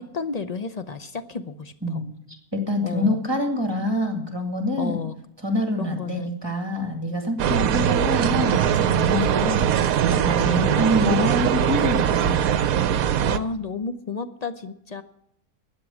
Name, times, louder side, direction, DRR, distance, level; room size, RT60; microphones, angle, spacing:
voice 1, 0.0-2.0 2.8-3.2 4.8-5.1 5.8-6.3 10.3-10.9 13.2-15.0, left 5 dB, 50° left, 10 dB, 0.5 m, -32 dB
voice 2, 2.5-5.0 5.4-12.5, left 1 dB, 15° right, 3 dB, 2.2 m, -26 dB
sound 1, 7.4-13.4, right 9 dB, 70° right, 1.1 m, -21 dB
13.0 x 9.3 x 7.2 m, 0.76 s
omnidirectional pair, 1.6 m